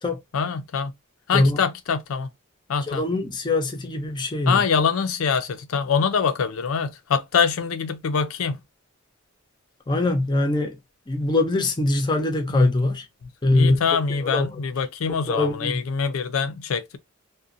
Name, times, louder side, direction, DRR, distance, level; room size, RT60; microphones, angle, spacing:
voice 1, 0.3-0.9 1.3-2.3 2.7-3.0 4.5-8.6 12.5-12.7 13.5-17.0, left 6 dB, 75° left, 0.4 m, -24 dB
voice 2, 2.9-4.6 9.9-10.8 11.1-13.1 13.4-13.8 14.1-14.6 15.1-15.8, left 2 dB, 20° left, 0.5 m, -22 dB
2.5 x 2.1 x 2.5 m
head